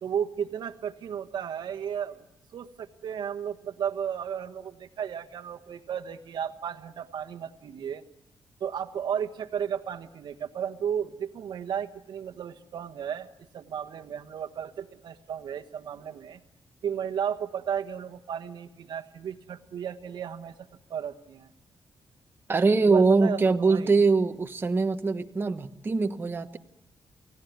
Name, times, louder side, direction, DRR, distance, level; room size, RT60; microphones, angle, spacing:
voice 1, 0.0-2.2 2.5-8.0 8.6-16.4 16.8-20.5 20.9-21.5 22.9-23.9, right 8 dB, 70° right, 10 dB, 1.4 m, -34 dB
voice 2, 22.5-26.6, right 4 dB, 30° right, 7 dB, 1.3 m, -23 dB
29.0 x 18.0 x 9.4 m, 0.87 s
cardioid pair, 105°, 8 cm